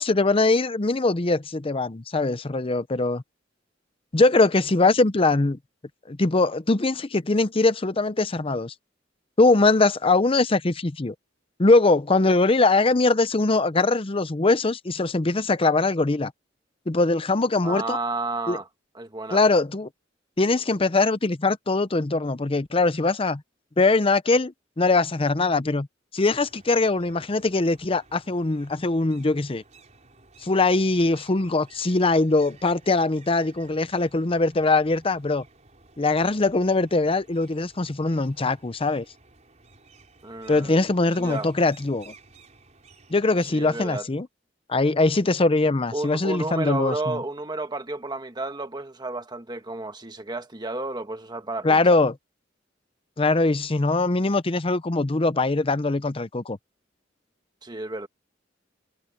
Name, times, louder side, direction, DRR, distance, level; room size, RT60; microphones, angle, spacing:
voice 1, 0.0-3.2 4.1-5.6 6.1-8.7 9.4-11.1 11.6-16.3 16.9-18.0 18.5-18.6 19.3-19.9 20.4-23.4 23.8-25.9 26.1-29.6 30.4-35.4 36.0-39.0 40.5-42.1 43.1-44.3 44.7-47.2 51.6-52.1 53.2-56.6, left 3 dB, 30° left, 0.7 m, -22 dB
voice 2, 17.6-18.7 18.9-19.4 40.2-40.8 41.1-41.5 43.4-44.1 45.9-52.0 57.6-58.1, right 2 dB, 25° right, 1.5 m, -32 dB
sound 1, 26.3-43.3, right 3 dB, 40° right, 5.0 m, -54 dB
head